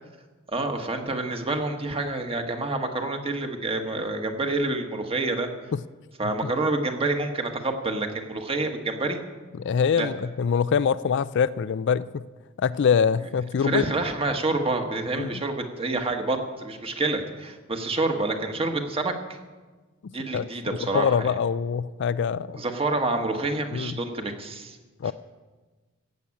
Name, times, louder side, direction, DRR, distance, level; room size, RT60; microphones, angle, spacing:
voice 1, 0.5-5.5 6.2-9.2 10.0-10.1 13.6-19.4 20.1-21.3 22.5-24.8 25.0-25.1, right 2 dB, 30° right, 5 dB, 1.4 m, -28 dB
voice 2, 9.6-12.2 12.6-13.8 15.2-15.3 20.0-22.6 23.7-24.0 25.0-25.1, left 6 dB, 60° left, 16 dB, 0.4 m, -24 dB
15.0 x 8.4 x 8.5 m, 1.3 s
head